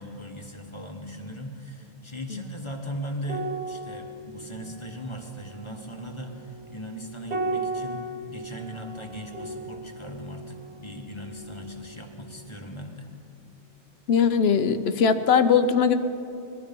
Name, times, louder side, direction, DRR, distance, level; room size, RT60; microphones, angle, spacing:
voice 1, 0.0-13.1, equal, 25° left, 3 dB, 1.4 m, -38 dB
sound 1, 3.2-12.0 12.3-12.5, right 2 dB, 70° right, 1.7 m, -36 dB
voice 2, 14.1-16.0, left 6 dB, 65° left, 10 dB, 1.0 m, -20 dB
21.0 x 12.5 x 5.4 m, 2.8 s
omnidirectional pair, 1.2 m